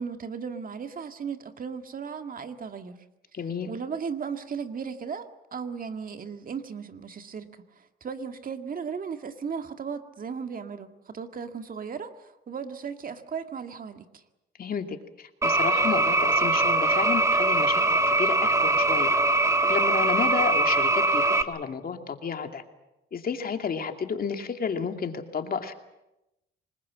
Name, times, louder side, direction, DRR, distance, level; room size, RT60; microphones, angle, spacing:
voice 1, 0.0-3.0 3.7-14.2, right 6 dB, 45° right, 7 dB, 1.9 m, -36 dB
voice 2, 3.3-3.7 14.6-19.1 19.6-22.6 23.1-25.7, left 6 dB, 50° left, 6 dB, 2.5 m, -31 dB
sound 1, 15.4-21.4, right 2 dB, 15° right, 1.6 m, -22 dB
26.5 x 20.5 x 7.5 m, 0.92 s
cardioid pair, 90°, 20 cm